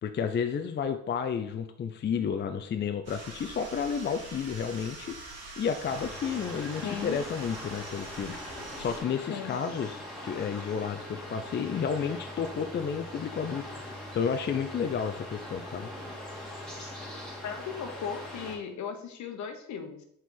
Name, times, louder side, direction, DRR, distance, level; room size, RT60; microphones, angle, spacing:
voice 1, 0.0-5.2 5.6-13.6 14.1-15.9, left 6 dB, 35° left, 8 dB, 0.5 m, -31 dB
sound 1, 3.0-9.0, right 3 dB, 55° right, 2.2 m, -44 dB
sound 2, 5.8-18.6, left 1 dB, ahead, 2.2 m, -42 dB
voice 2, 6.8-7.2 9.3-9.6 17.4-20.0, left 7 dB, 70° left, 6 dB, 1.0 m, -37 dB
5.8 x 4.4 x 3.8 m, 0.72 s
cardioid pair, 90°, 30 cm